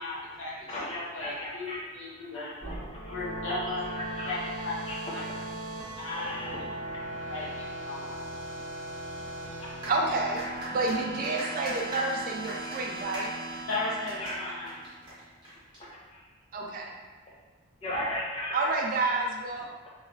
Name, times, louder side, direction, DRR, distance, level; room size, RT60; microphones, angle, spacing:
voice 1, 0.0-2.5 3.1-3.9 4.2-4.4 4.6-4.7 5.1-5.2 6.0-6.5 7.3-7.5 7.8-8.3 13.7-14.8, left 3 dB, 70° left, -7 dB, 1.0 m, -36 dB
voice 2, 0.7-1.8 2.3-3.1 3.9-4.3 4.9-5.0 6.1-6.6 7.4-7.5 9.6-9.7 11.2-11.4 12.6-12.7 14.2-14.4 15.5-15.6 16.1-16.2 17.8-18.6, left 1 dB, 25° left, -5 dB, 0.5 m, -37 dB
sound 1, 2.6-8.5, right 1 dB, 55° left, 1.5 m, -48 dB
sound 2, 2.8-15.1, right 1 dB, 85° right, 0.7 m, -39 dB
sound 3, 9.8-15.8, right 1 dB, 20° right, 1.0 m, -41 dB
voice 3, 9.9-10.4 10.7-13.3 16.5-17.0 18.5-19.7, right 3 dB, 40° right, 0 dB, 0.3 m, -29 dB
3.0 x 2.9 x 2.6 m, 1.3 s
head